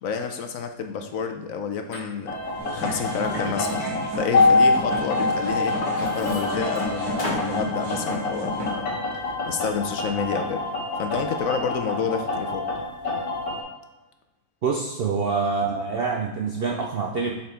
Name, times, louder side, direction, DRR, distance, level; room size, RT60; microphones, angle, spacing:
voice 1, 0.0-3.7 4.1-10.6 11.0-12.7, left 6 dB, 70° left, 5 dB, 1.0 m, -29 dB
Liquid, 1.9-2.0 2.6-5.0 5.4-6.8 7.2-7.5, left 1 dB, 30° left, 1.5 m, -35 dB
sound 1, 2.3-13.6, left 3 dB, 85° left, 2.0 m, -26 dB
sound 2, 2.6-8.7, equal, 85° right, 2.3 m, -33 dB
voice 2, 14.6-17.3, right 5 dB, 65° right, 0 dB, 0.6 m, -26 dB
5.8 x 4.1 x 4.3 m, 1.1 s
omnidirectional pair, 1.6 m